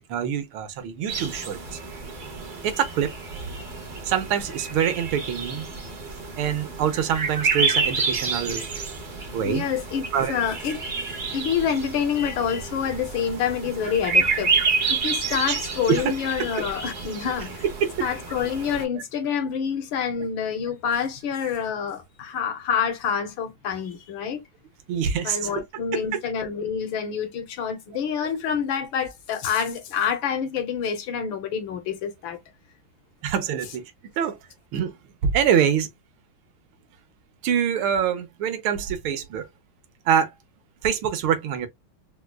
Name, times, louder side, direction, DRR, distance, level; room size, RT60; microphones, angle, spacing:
voice 1, 0.0-1.8 2.6-3.1 4.0-5.7 6.4-8.6 9.3-9.7 10.1-10.3 15.5-15.6 15.9-16.0 17.8-17.9 18.9-19.0 24.9-25.5 25.9-26.0 33.2-33.8 34.2-34.4 34.7-34.9 35.2-35.9 37.4-39.5 40.1-40.3 40.8-41.7, right 8 dB, 80° right, 1.6 m, -25 dB
sound 1, 1.1-18.8, right 4 dB, 55° right, 0.5 m, -29 dB
voice 2, 9.4-10.0 10.3-10.8 11.3-14.5 14.9-17.6 18.0-24.4 25.2-32.4, left 7 dB, 70° left, 1.5 m, -27 dB
4.6 x 2.3 x 2.2 m
omnidirectional pair, 2.3 m